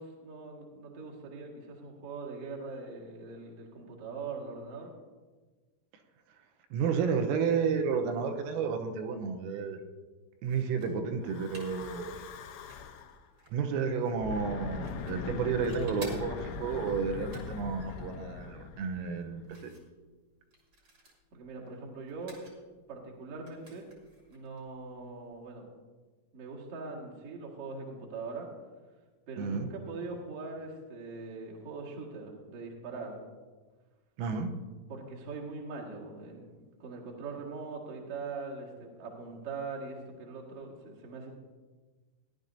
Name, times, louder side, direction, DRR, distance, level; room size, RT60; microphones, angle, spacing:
voice 1, 0.0-4.9 21.3-22.4 22.9-23.9 24.3-25.7 26.3-28.5 29.3-33.2 34.9-41.3, right 4 dB, 60° right, -3 dB, 1.6 m, -42 dB
voice 2, 6.7-9.8 10.4-12.2 13.5-19.7 29.4-29.7 34.2-34.5, right 5 dB, 85° right, 5 dB, 3.6 m, -31 dB
sound 1, 10.4-25.6, right 2 dB, 45° right, 1.5 m, -56 dB
Breathing / Wind, 11.2-13.2 14.1-19.5, left 5 dB, 85° left, 3.2 m, -41 dB
17.5 x 11.0 x 2.7 m, 1.3 s
omnidirectional pair, 5.9 m